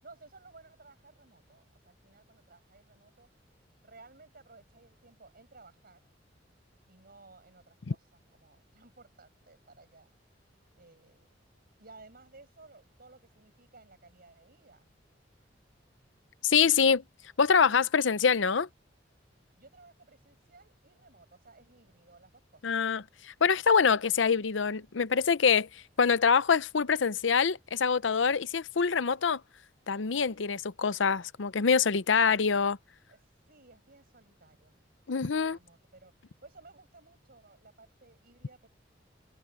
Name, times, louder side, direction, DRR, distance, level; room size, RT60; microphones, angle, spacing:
voice 1, 0.0-3.3 3.8-6.0 6.9-10.1 10.7-11.3 11.8-14.9 19.6-22.8 33.1-38.7, right 3 dB, 55° right, 7.8 m, -57 dB
voice 2, 16.4-17.0 17.4-18.7 22.6-23.0 23.4-25.7 26.0-29.4 29.9-32.8 35.1-35.6, left 6 dB, 85° left, 0.7 m, -25 dB
head